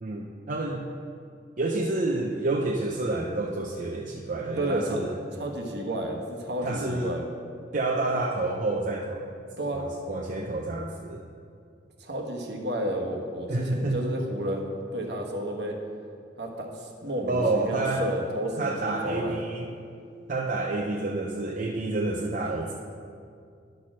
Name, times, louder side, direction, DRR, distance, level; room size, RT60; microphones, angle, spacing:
voice 1, 0.0-0.9 1.6-5.1 6.6-7.1 7.7-9.3 9.7-11.2 13.5-14.0 17.3-18.0 18.6-19.7 20.3-22.7, right 2 dB, 45° right, -1 dB, 0.6 m, -29 dB
voice 2, 4.6-5.0 5.3-7.2 9.6-9.9 12.0-15.7 16.4-19.4, right 1 dB, 65° right, 1 dB, 1.2 m, -31 dB
11.5 x 4.3 x 6.1 m, 2.3 s
head